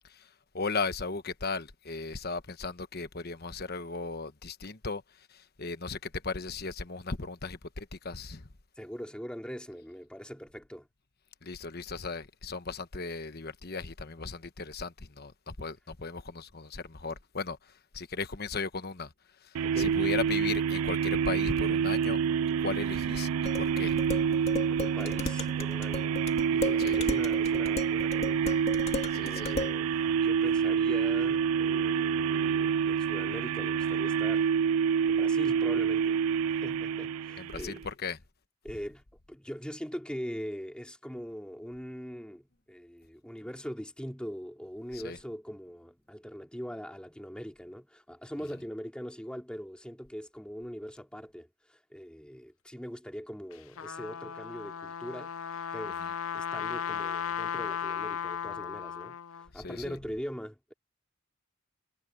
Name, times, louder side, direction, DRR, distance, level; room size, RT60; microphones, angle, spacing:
voice 1, 0.0-8.5 11.4-19.1 19.4-22.2 22.6-24.0 26.8-27.0 29.1-29.5 37.4-38.2 44.9-45.2 59.5-60.0, left 4 dB, 45° left, 1.2 m, -37 dB
voice 2, 8.8-10.9 19.6-19.9 24.7-26.2 26.5-28.6 29.1-29.9 30.2-34.5 35.1-36.2 36.5-37.8 38.6-56.1 56.3-60.7, equal, 5° left, 2.7 m, -42 dB
sound 1, 19.6-37.8, right 7 dB, 85° right, 0.3 m, -28 dB
Dishes pots and pans, 23.5-29.8, left 2 dB, 30° left, 2.1 m, -36 dB
Trumpet, 53.5-59.5, left 8 dB, 75° left, 0.5 m, -36 dB
head